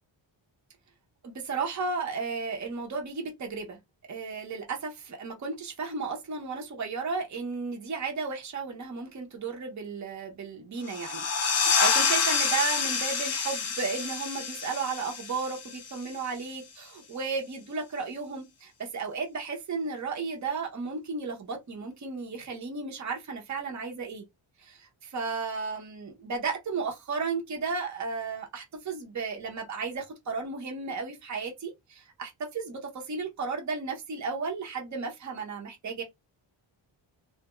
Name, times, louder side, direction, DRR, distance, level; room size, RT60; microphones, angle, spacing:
voice 1, 1.2-3.8 4.1-24.2 24.6-36.0, right 4 dB, 35° right, 0.7 m, -34 dB
sound 1, 10.9-16.2, left 5 dB, 35° left, 0.4 m, -28 dB
2.2 x 2.0 x 2.9 m
wide cardioid pair, 125°, 49 cm